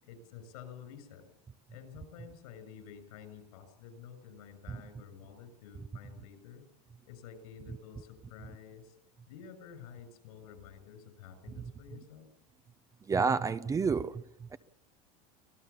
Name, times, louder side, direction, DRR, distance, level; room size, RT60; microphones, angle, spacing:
voice 1, 0.0-1.3 1.7-6.6 7.0-9.0 9.3-12.3, left 8 dB, 85° left, 10 dB, 6.5 m, -50 dB
voice 2, 13.1-14.6, right 5 dB, 15° right, 13 dB, 0.7 m, -30 dB
24.5 x 18.0 x 7.0 m, 0.86 s
supercardioid pair, 135°, 19 cm